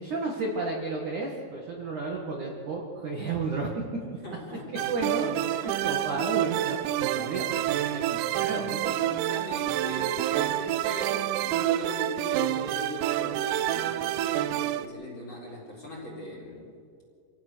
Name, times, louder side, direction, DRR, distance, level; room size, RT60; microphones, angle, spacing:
voice 1, 0.0-3.8 4.9-8.9, right 3 dB, 55° right, -1 dB, 2.4 m, -32 dB
voice 2, 4.2-4.9 5.4-5.8 8.9-16.7, left 1 dB, 25° left, -2 dB, 3.9 m, -39 dB
sound 1, 4.8-14.9, right 14 dB, 85° right, 3.4 m, -28 dB
27.0 x 17.5 x 6.4 m, 2.4 s
omnidirectional pair, 6.0 m